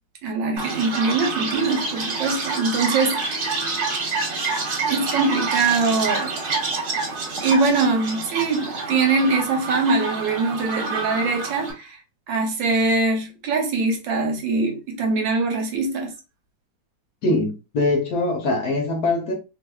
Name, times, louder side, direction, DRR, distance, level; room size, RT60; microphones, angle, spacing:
voice 1, 0.2-3.6 4.8-6.3 7.4-12.0 12.3-16.1, right 3 dB, 75° right, 1.5 m, -23 dB
Chirp tweet, 0.6-11.7, right 3 dB, 60° right, 1.6 m, -27 dB
voice 2, 17.2-19.3, left 2 dB, 60° left, 1.2 m, -22 dB
3.3 x 3.2 x 2.3 m
omnidirectional pair, 2.1 m